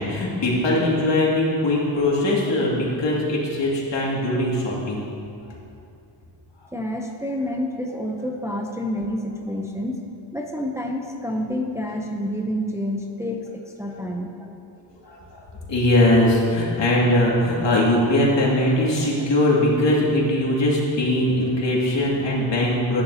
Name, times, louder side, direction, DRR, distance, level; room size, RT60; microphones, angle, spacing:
voice 1, 0.0-5.1 13.9-14.0 15.0-15.4 15.7-23.0, left 1 dB, 70° left, -4 dB, 2.3 m, -21 dB
voice 2, 6.7-10.0 10.3-14.5, equal, 5° right, 1 dB, 0.6 m, -28 dB
14.0 x 9.5 x 2.8 m, 2.6 s
wide cardioid pair, 120°, 45 cm